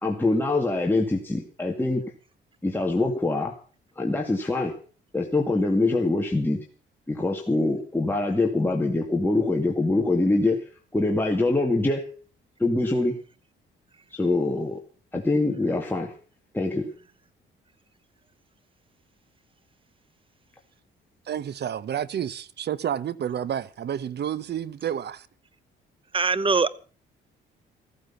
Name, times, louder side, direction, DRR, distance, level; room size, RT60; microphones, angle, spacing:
voice 1, 0.0-2.0 2.6-3.5 4.0-4.7 5.1-6.6 7.1-10.6 10.9-12.1 12.6-13.1 14.1-14.8 15.1-16.1 16.5-16.9, left 2 dB, 10° left, 2.3 m, -24 dB
voice 2, 21.3-25.2, right 9 dB, 55° right, 0.9 m, -30 dB
voice 3, 26.1-26.7, right 4 dB, 25° right, 0.9 m, -22 dB
15.0 x 14.5 x 5.8 m
cardioid pair, 90°, 20 cm